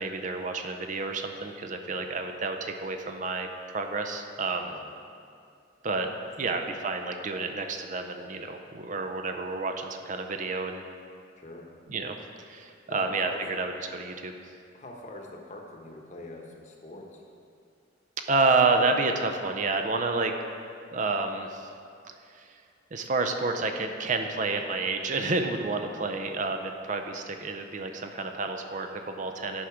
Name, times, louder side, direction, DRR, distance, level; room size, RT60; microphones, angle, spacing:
voice 1, 0.0-4.7 5.8-6.1 6.4-10.8 11.9-12.2 12.4-14.3 18.3-20.3 20.9-21.7 22.4-22.5 22.9-29.6, right 3 dB, 45° right, 5 dB, 0.5 m, -29 dB
voice 2, 4.6-4.9 6.4-6.5 11.4-11.7 12.9-13.6 14.7-17.2 25.9-26.1, left 1 dB, 40° left, 1 dB, 1.0 m, -44 dB
9.8 x 5.9 x 4.9 m, 2.4 s
head